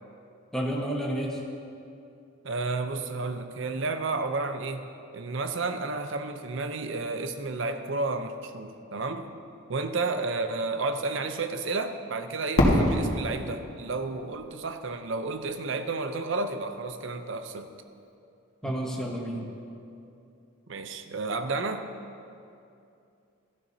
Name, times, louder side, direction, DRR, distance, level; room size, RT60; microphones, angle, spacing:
voice 1, 0.5-1.4 18.6-19.4, right 1 dB, 5° left, -2 dB, 1.0 m, -30 dB
voice 2, 2.4-4.9 5.1-9.3 9.7-17.7 18.6-18.7 20.7-21.9, right 3 dB, 60° right, 8 dB, 0.6 m, -31 dB
Fireworks, 12.6-15.4, left 1 dB, 80° left, 1.6 m, -26 dB
13.5 x 11.0 x 2.7 m, 2.6 s
head